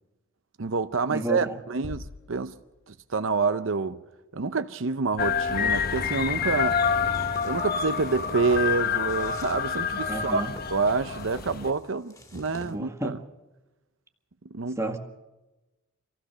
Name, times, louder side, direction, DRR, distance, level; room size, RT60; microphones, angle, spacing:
voice 1, 0.6-2.5 2.9-4.0 4.3-6.8 7.4-10.4 10.7-13.2 14.5-14.8, right 4 dB, 65° right, 0.7 m, -27 dB
voice 2, 1.1-1.6 10.1-10.5 12.5-13.2 14.8-15.0, right 1 dB, 15° right, 1.8 m, -31 dB
sound 1, 1.8-3.4, left 3 dB, 85° left, 0.8 m, -44 dB
sound 2, 5.2-11.7, left 6 dB, 50° left, 1.1 m, -28 dB
sound 3, 7.0-12.7, left 1 dB, 15° left, 2.3 m, -48 dB
25.5 x 16.0 x 6.8 m
head